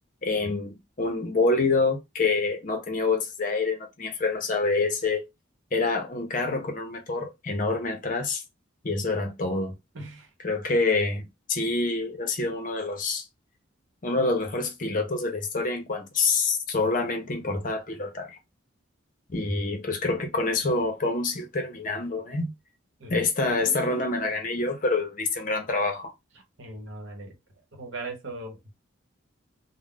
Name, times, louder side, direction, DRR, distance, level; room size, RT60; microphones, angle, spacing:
voice 1, 0.2-5.2 5.7-8.4 8.8-9.7 10.4-13.2 14.0-18.4 19.3-22.5 23.1-26.1, left 3 dB, 40° left, 0.6 m, -27 dB
voice 2, 9.9-10.3 23.0-23.3 26.6-27.3 27.7-28.7, right 2 dB, 65° right, 0.9 m, -38 dB
2.4 x 2.1 x 3.6 m
head